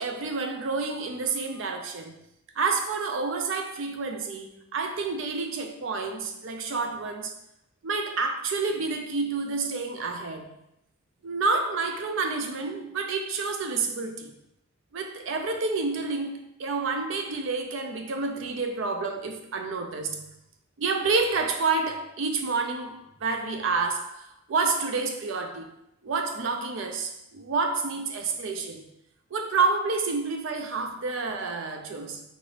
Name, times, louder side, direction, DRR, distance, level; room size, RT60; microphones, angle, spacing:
voice 1, 0.0-2.1 2.6-7.3 7.8-10.5 11.2-14.3 14.9-20.3 20.8-25.7 26.0-28.9 29.3-32.2, right 4 dB, 70° right, 0.4 m, -29 dB
3.9 x 2.5 x 3.3 m
head